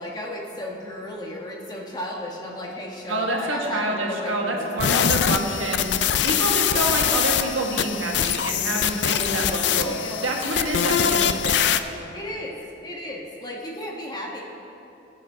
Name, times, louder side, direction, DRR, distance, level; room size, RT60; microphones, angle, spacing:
voice 1, 0.0-5.6 6.6-7.0 9.1-10.4 12.1-14.4, left 1 dB, 20° left, -2 dB, 1.2 m, -34 dB
voice 2, 3.1-5.9 6.2-10.0 10.2-11.7, right 1 dB, 85° right, 0 dB, 1.5 m, -27 dB
sound 1, 4.8-11.8, left 9 dB, 60° left, 0.4 m, -23 dB
17.5 x 8.1 x 3.5 m, 2.8 s
head